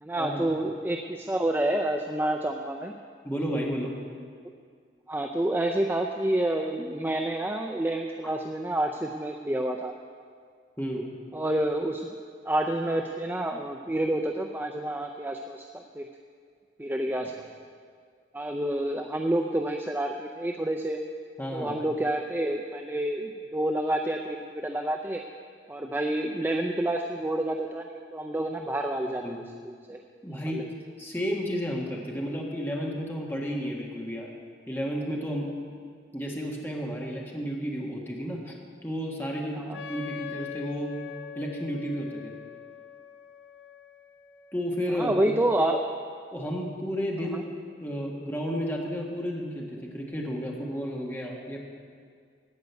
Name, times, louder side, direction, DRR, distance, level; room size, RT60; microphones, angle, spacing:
voice 1, 0.0-2.9 5.1-9.9 11.3-12.1 12.4-16.1 16.8-17.5 18.3-21.0 21.5-25.2 25.7-27.8 28.1-29.2 29.6-30.0 30.3-30.7 39.6-39.8 44.9-45.8 47.3-47.4, right 1 dB, 10° right, 3 dB, 0.4 m, -28 dB
voice 2, 3.2-3.9 8.2-8.3 10.8-11.0 17.2-17.3 21.4-21.8 29.2-29.4 30.2-30.7 31.0-34.3 34.7-35.5 36.1-38.5 38.8-40.9 41.3-42.3 44.5-45.3 46.3-47.5 47.8-51.6, equal, 10° left, -2 dB, 1.5 m, -32 dB
Wind instrument woodwind instrument, 39.7-45.4, left 10 dB, 80° left, 0.8 m, -43 dB
15.0 x 5.3 x 9.4 m, 2.1 s
head